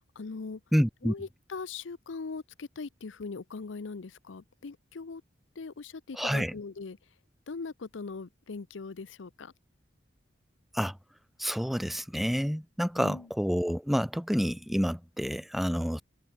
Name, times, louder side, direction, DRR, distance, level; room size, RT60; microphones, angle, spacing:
voice 1, 0.2-0.6 1.0-5.2 5.6-7.0 7.5-9.5 13.0-13.2, left 4 dB, 85° left, 0.6 m, -40 dB
voice 2, 0.7-1.1 6.1-6.6 10.7-11.0 11.4-16.0, equal, ahead, 1.8 m, -28 dB
head